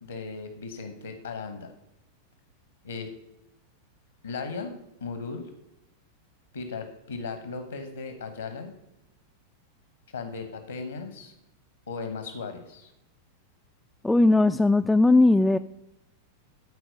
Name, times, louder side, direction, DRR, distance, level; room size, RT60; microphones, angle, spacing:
voice 1, 0.0-1.7 2.8-3.1 4.2-5.5 6.5-8.7 10.1-11.3 11.9-12.9, left 4 dB, 75° left, 7 dB, 1.1 m, -37 dB
voice 2, 14.0-15.6, left 2 dB, 5° left, 8 dB, 0.3 m, -19 dB
13.0 x 4.5 x 6.5 m, 0.90 s
figure-of-eight pair, 90°, 0 cm